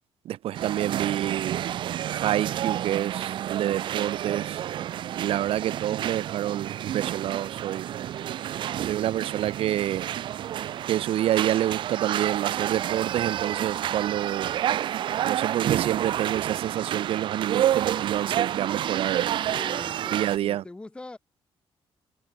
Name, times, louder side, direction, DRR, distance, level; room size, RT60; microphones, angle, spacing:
voice 1, 0.2-1.7 2.1-4.6 5.2-7.9 8.8-10.1 10.9-14.5 15.2-19.3 20.1-20.6, right 12 dB, 70° right, 0.8 m, -28 dB
sound 1, 0.5-20.4, right 11 dB, 55° right, 0.4 m, -29 dB
voice 2, 19.5-21.2, left 2 dB, 10° left, 1.4 m, -42 dB
cardioid pair, 180°, 10 cm